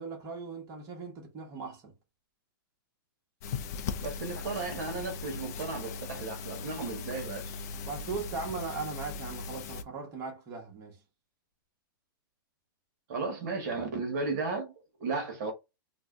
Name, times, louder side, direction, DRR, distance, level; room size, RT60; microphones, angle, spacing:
voice 1, 0.0-1.9 7.8-11.0, right 4 dB, 25° right, 1.0 m, -39 dB
sound 1, 3.4-9.8, left 5 dB, 45° left, 0.4 m, -39 dB
voice 2, 4.0-7.5 13.1-14.7 15.0-15.5, right 3 dB, 50° right, 1.0 m, -34 dB
2.6 x 2.1 x 3.5 m
hypercardioid pair, 150°, 12 cm